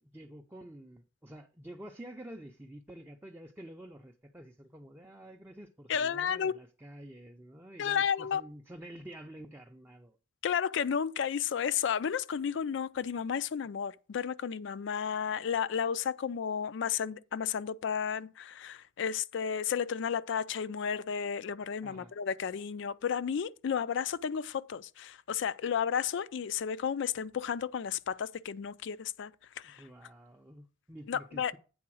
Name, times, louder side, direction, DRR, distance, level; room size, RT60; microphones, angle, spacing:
voice 1, 0.0-10.2 21.8-22.1 29.6-31.6, right 1 dB, 10° right, 0.5 m, -49 dB
voice 2, 5.9-6.5 7.8-8.4 10.4-29.3 29.6-29.8 31.1-31.5, left 7 dB, 65° left, 0.4 m, -32 dB
8.6 x 3.9 x 6.2 m
head